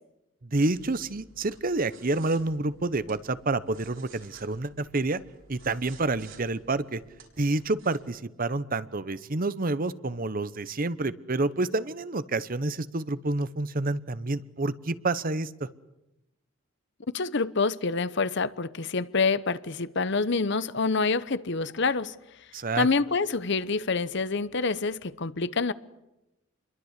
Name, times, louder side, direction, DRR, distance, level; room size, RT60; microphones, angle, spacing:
voice 1, 0.4-5.2 5.5-7.0 7.4-15.7 22.5-22.9, right 2 dB, 45° right, 0.9 m, -28 dB
sound 1, 0.6-8.0, right 4 dB, 70° right, 5.2 m, -54 dB
voice 2, 17.1-22.2 22.8-25.7, left 4 dB, 60° left, 0.9 m, -27 dB
28.5 x 22.5 x 8.2 m
head